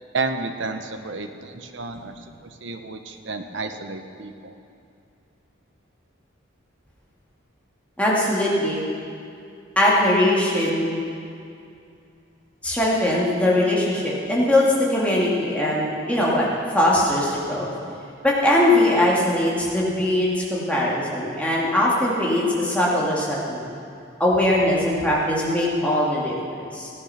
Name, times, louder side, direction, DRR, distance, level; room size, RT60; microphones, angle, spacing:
voice 1, 0.1-2.1 2.6-4.5, right 3 dB, 65° right, 7 dB, 0.9 m, -31 dB
voice 2, 8.0-8.9 9.8-11.0 12.6-16.5 16.7-17.7 18.2-23.7 24.2-26.9, left 1 dB, 5° left, -5 dB, 2.2 m, -21 dB
16.5 x 9.4 x 5.8 m, 2.5 s
head